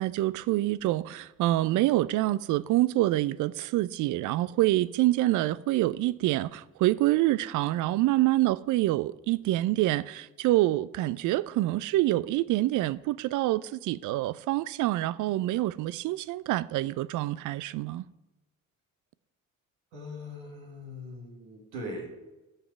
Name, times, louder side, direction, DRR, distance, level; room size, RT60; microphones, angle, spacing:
voice 1, 0.0-18.0, right 16 dB, 50° right, 0.5 m, -26 dB
voice 2, 19.9-22.1, left 1 dB, 70° right, 2.0 m, -40 dB
14.0 x 5.6 x 4.7 m
figure-of-eight pair, 45°, 40 cm